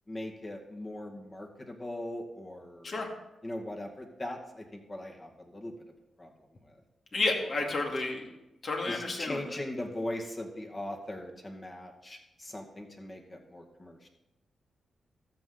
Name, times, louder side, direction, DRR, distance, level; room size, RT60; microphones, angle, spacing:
voice 1, 0.1-3.0 3.4-5.8 6.2-6.3 7.1-7.2 8.9-14.1, left 1 dB, 30° left, 1 dB, 2.0 m, -40 dB
voice 2, 7.1-8.3 8.6-9.4, left 2 dB, 55° left, 1 dB, 2.2 m, -31 dB
13.5 x 6.7 x 4.1 m, 0.93 s
cardioid pair, 55°, 0 cm